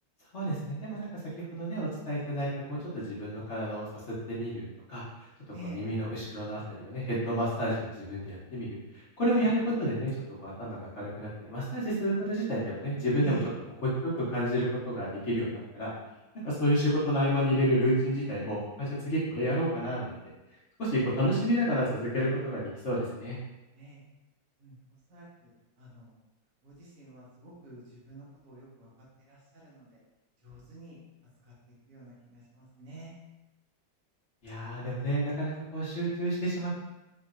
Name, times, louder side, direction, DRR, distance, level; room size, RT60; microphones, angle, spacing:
voice 1, 0.3-1.1 1.5-3.9 4.3-5.0 5.7-10.1 10.4-13.4 13.8-15.9 16.4-20.1 20.8-23.4 34.4-36.8, equal, 45° left, -8 dB, 1.1 m, -30 dB
voice 2, 5.5-5.9 9.3-9.5 13.2-13.5 23.7-24.0 24.6-24.8 25.1-25.5 25.8-26.2 26.6-30.0 30.4-31.0 31.4-31.5 31.9-33.1, right 1 dB, 50° right, -6 dB, 1.3 m, -48 dB
4.5 x 2.9 x 2.4 m, 1.0 s
omnidirectional pair, 2.1 m